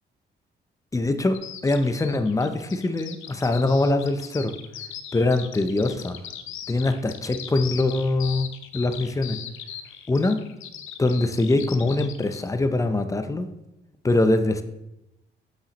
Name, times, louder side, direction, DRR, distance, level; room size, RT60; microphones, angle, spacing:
voice 1, 0.9-4.6 5.1-6.2 6.7-8.5 8.7-9.4 10.1-10.4 11.0-13.5 14.0-14.6, left 2 dB, 15° left, 0.6 m, -23 dB
Bird vocalization bird call bird song, 1.3-12.5, left 10 dB, 80° left, 0.7 m, -39 dB
8.3 x 5.6 x 3.0 m
cardioid pair, 90°, 20 cm